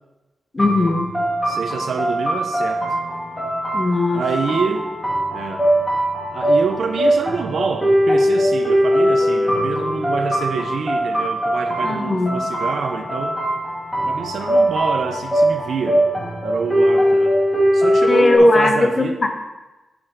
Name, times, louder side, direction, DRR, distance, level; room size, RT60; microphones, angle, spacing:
voice 1, 0.5-1.1 3.7-4.2 11.8-12.4 18.1-19.3, left 2 dB, 25° left, 5 dB, 0.9 m, -17 dB
sound 1, 0.6-18.4, equal, 5° left, 2.5 m, -20 dB
voice 2, 1.4-2.8 4.1-4.9 5.3-5.7 6.3-13.4 14.0-17.4 17.7-19.2, right 5 dB, 65° right, 5 dB, 0.7 m, -27 dB
8.9 x 6.2 x 5.0 m, 1.1 s
wide cardioid pair, 165°, 0 cm